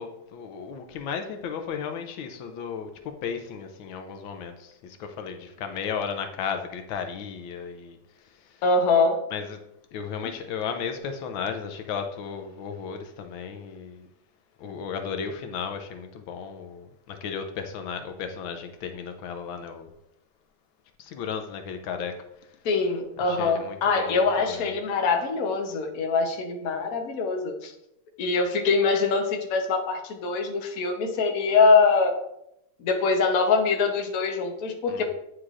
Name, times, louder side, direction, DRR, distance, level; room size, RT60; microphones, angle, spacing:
voice 1, 0.0-2.9 3.2-8.0 9.3-9.6 9.9-14.0 14.6-19.9 21.1-22.2 23.3-24.2 34.9-35.0, left 6 dB, 85° left, 1.4 m, -34 dB
voice 2, 8.6-9.2 10.2-10.3 22.6-27.7 28.2-32.1 32.8-35.1, left 4 dB, 55° left, 1.2 m, -23 dB
9.6 x 4.7 x 2.5 m
omnidirectional pair, 2.2 m